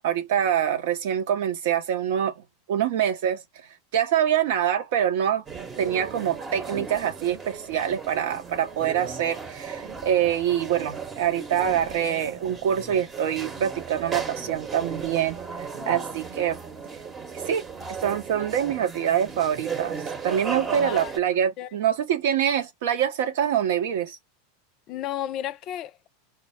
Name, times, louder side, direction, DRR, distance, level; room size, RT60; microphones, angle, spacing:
voice 1, 0.0-2.3 2.7-3.4 3.9-5.4 5.8-16.6 17.5-17.6 18.0-24.2, right 9 dB, 60° right, 0.8 m, -25 dB
sound 1, 5.5-21.2, right 5 dB, 25° right, 0.9 m, -36 dB
voice 2, 24.9-26.1, left 12 dB, 45° left, 0.4 m, -33 dB
4.4 x 2.0 x 3.5 m
figure-of-eight pair, 85°, 0 cm